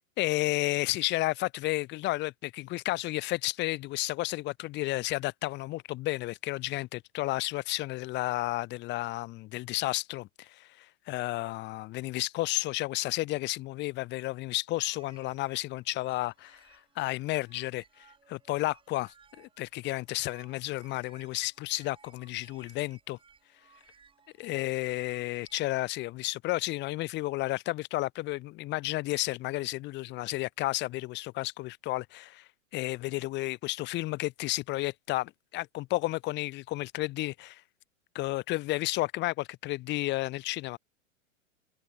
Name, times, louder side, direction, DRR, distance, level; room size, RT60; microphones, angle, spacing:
voice 1, 0.2-23.2 24.4-37.6 38.1-40.8, left 19 dB, 25° left, 0.9 m, -32 dB
sound 1, 14.8-25.8, right 6 dB, 15° right, 2.8 m, -61 dB
hypercardioid pair, 140°, 40 cm